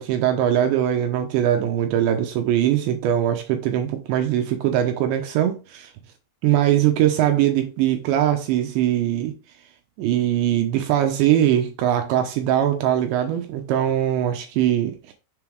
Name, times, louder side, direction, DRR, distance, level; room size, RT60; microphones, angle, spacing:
voice 1, 0.0-5.9 6.4-9.3 10.0-15.1, right 11 dB, 80° right, 2.8 m, -21 dB
6.9 x 3.7 x 4.7 m
omnidirectional pair, 5.6 m